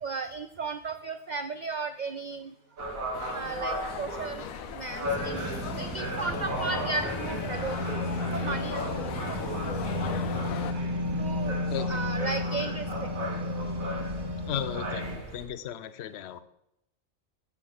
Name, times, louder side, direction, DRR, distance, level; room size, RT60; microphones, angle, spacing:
voice 1, 0.0-2.5 3.3-4.5 4.7-5.5 5.8-8.0 8.3-9.4 9.7-9.8 10.0-10.2 10.6-10.7 11.2-11.6 11.9-13.1, right 4 dB, 60° right, 10 dB, 0.4 m, -35 dB
sound 1, 2.8-15.5, equal, 80° right, 2.4 m, -37 dB
sound 2, 3.1-10.7, left 11 dB, 80° left, 1.0 m, -38 dB
sound 3, 5.0-15.2, left 1 dB, 20° right, 1.3 m, -33 dB
voice 2, 11.7-12.0 14.5-15.1 15.3-16.4, left 9 dB, 60° left, 13 dB, 0.9 m, -35 dB
8.2 x 6.9 x 7.7 m, 0.80 s
omnidirectional pair, 1.4 m